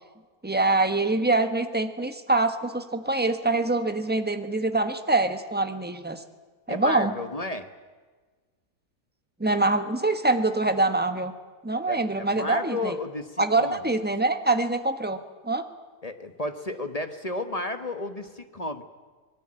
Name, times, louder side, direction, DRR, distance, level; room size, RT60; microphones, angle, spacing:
voice 1, 0.4-6.2 6.7-7.1 9.4-11.3 11.6-13.0 13.4-15.2 15.4-15.6, right 2 dB, 5° right, 8 dB, 1.0 m, -24 dB
voice 2, 6.7-7.7 11.9-13.8 16.0-18.8, left 2 dB, 25° left, 8 dB, 1.1 m, -32 dB
26.0 x 19.0 x 8.8 m, 1.4 s
omnidirectional pair, 1.8 m